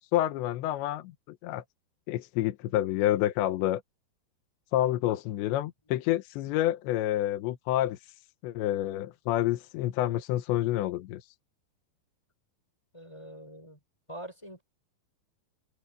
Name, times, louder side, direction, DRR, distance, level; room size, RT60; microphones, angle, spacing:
voice 1, 0.1-1.6 2.1-3.8 4.7-8.0 8.4-11.2, left 13 dB, 80° left, 3.3 m, -28 dB
voice 2, 12.9-13.8 14.1-14.6, right 1 dB, 5° left, 4.3 m, -44 dB
omnidirectional pair, 5.2 m